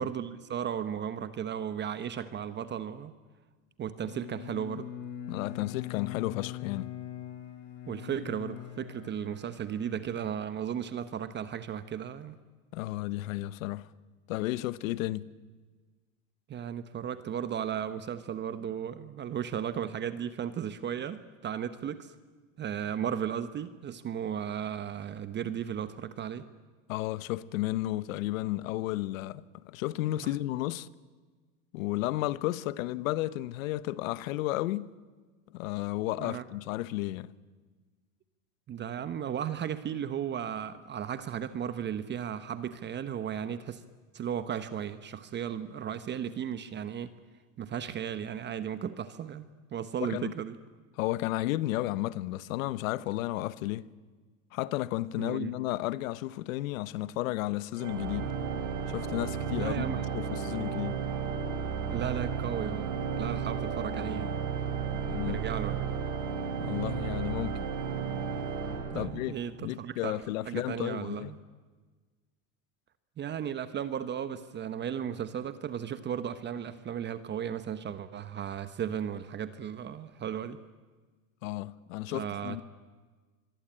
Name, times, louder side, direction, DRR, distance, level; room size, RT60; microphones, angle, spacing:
voice 1, 0.0-3.1 3.8-4.9 7.9-12.4 16.5-22.1 22.6-26.5 36.2-36.4 38.7-43.8 44.1-47.1 47.6-50.6 55.2-55.5 59.5-60.1 61.9-64.3 65.2-65.9 68.9-70.2 70.4-71.4 73.2-80.6 82.1-82.6, right 9 dB, 25° right, 1.0 m, -35 dB
Bowed string instrument, 4.0-10.6, left 11 dB, 70° left, 5.3 m, -42 dB
voice 2, 5.3-6.9 12.7-13.9 14.3-15.3 26.9-30.9 31.7-34.9 35.5-37.3 50.0-50.3 51.0-53.9 54.5-58.3 58.9-59.8 60.1-61.0 65.1-65.4 66.6-67.7 68.9-71.3 81.4-82.6, left 16 dB, 85° left, 1.0 m, -33 dB
Organ, 57.8-69.6, right 6 dB, 50° right, 4.1 m, -33 dB
26.0 x 23.0 x 8.9 m
supercardioid pair, 135°, 39 cm